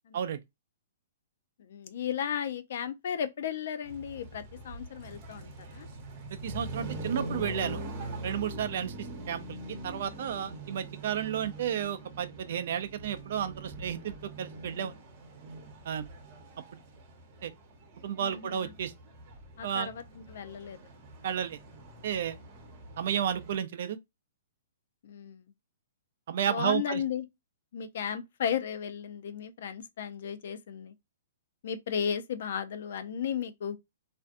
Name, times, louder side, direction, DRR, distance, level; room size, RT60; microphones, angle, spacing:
voice 1, 1.6-5.9 18.2-18.7 19.6-20.8 25.0-25.4 26.5-27.2 27.7-30.9 31.6-33.8, left 8 dB, 60° left, 0.4 m, -35 dB
sound 1, 3.9-23.6, right 2 dB, 30° right, 1.0 m, -43 dB
voice 2, 6.4-7.8 8.2-9.6 9.8-14.9 15.9-16.1 17.4-17.5 18.0-18.9 19.6-19.9 21.2-21.6 22.0-22.4 23.0-24.0 26.3-27.0, right 9 dB, 55° right, 0.4 m, -32 dB
2.5 x 2.2 x 2.5 m
hypercardioid pair, 160°, 0 cm